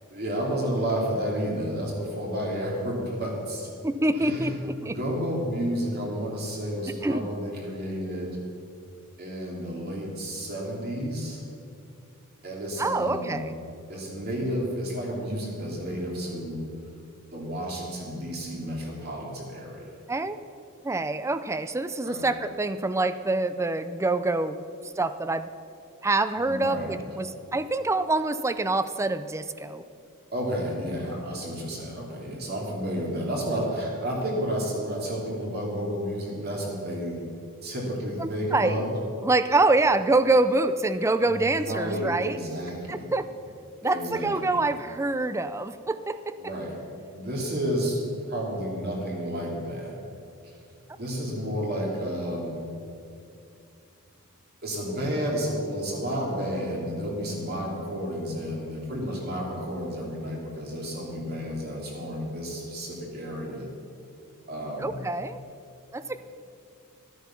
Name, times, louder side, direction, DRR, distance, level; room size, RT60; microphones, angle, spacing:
voice 1, 0.1-3.7 4.1-8.4 9.2-11.4 12.4-13.4 13.9-16.7 17.3-19.9 22.0-22.3 26.3-27.0 30.3-37.2 37.6-38.9 41.2-43.1 43.8-44.5 46.4-46.8 47.1-49.9 50.4-50.5 51.0-52.6 54.6-63.7 64.5-65.0, equal, 45° right, -2 dB, 2.9 m, -31 dB
voice 2, 3.8-5.0 7.0-7.3 12.8-13.6 20.1-20.4 20.8-24.6 25.0-25.5 26.0-29.8 38.2-38.8 39.2-42.4 42.9-43.3 43.8-46.4 64.8-65.4 65.9-66.2, right 2 dB, 15° right, 12 dB, 0.4 m, -26 dB
13.5 x 9.2 x 5.9 m, 2.5 s
head